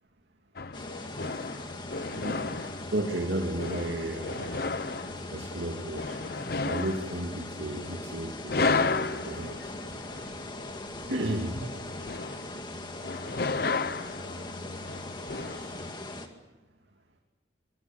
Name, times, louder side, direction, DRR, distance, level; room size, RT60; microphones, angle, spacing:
sound 1, 0.6-15.9, left 4 dB, 55° left, 0.8 m, -34 dB
sound 2, 0.7-16.3, left 2 dB, 25° left, 2.1 m, -41 dB
voice 1, 2.1-2.5 2.9-4.6 5.3-6.2 6.6-9.7 11.1-11.9 12.5-12.6 15.4-15.7, right 1 dB, 70° right, 2 dB, 2.5 m, -34 dB
24.5 x 23.5 x 7.1 m, 1.2 s
head